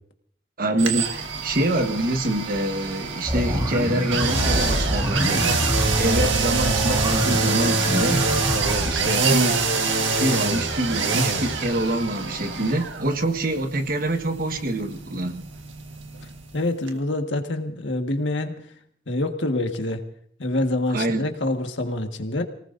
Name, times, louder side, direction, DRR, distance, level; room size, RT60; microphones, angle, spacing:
voice 1, 0.6-5.5 6.0-8.3 8.8-9.6 10.2-15.4 20.9-21.3, right 1 dB, 50° right, 7 dB, 1.3 m, -25 dB
sound 1, 0.8-16.6 16.9-17.0, right 4 dB, 90° right, 1.6 m, -25 dB
sound 2, 3.3-9.0, equal, 20° right, 1.9 m, -26 dB
voice 2, 16.5-18.5 19.1-20.0 20.4-22.4, left 2 dB, 80° left, 5 dB, 1.6 m, -26 dB
29.0 x 19.0 x 2.6 m, 0.64 s
head